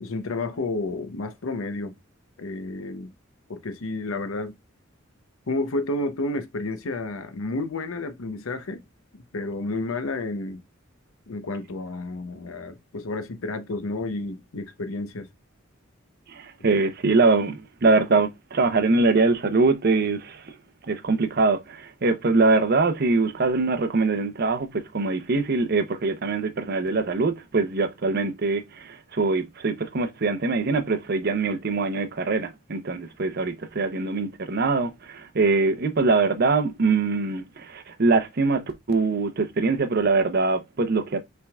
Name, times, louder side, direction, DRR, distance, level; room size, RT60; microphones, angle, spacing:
voice 1, 0.0-2.0 2.4-3.1 3.5-4.5 5.5-8.8 9.1-10.6 11.3-15.3, left 2 dB, 80° left, 0.7 m, -31 dB
voice 2, 16.3-20.6 20.9-41.2, right 3 dB, 50° right, 0.7 m, -23 dB
5.7 x 3.5 x 2.3 m
head